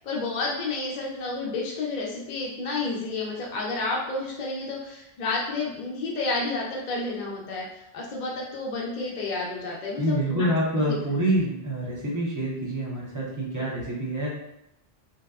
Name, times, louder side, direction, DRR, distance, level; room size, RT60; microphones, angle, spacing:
voice 1, 0.0-7.7 7.9-10.5 10.8-11.0, left 3 dB, 55° left, -3 dB, 0.6 m, -30 dB
voice 2, 10.0-14.4, right 1 dB, 25° right, -6 dB, 0.5 m, -26 dB
2.7 x 2.1 x 2.3 m, 0.81 s
omnidirectional pair, 1.1 m